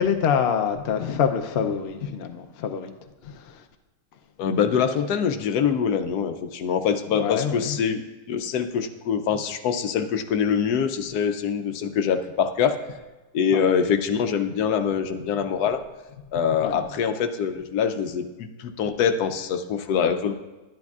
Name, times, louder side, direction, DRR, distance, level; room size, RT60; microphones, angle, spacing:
voice 1, 0.0-2.9 3.2-3.6 7.1-7.8 13.5-13.7 16.6-16.8, left 7 dB, 60° left, 6 dB, 0.7 m, -25 dB
voice 2, 4.4-8.0 8.3-12.8 13.3-15.8 16.3-20.3, left 7 dB, 90° left, 8 dB, 1.2 m, -24 dB
11.5 x 10.5 x 2.4 m, 1.1 s
omnidirectional pair, 1.6 m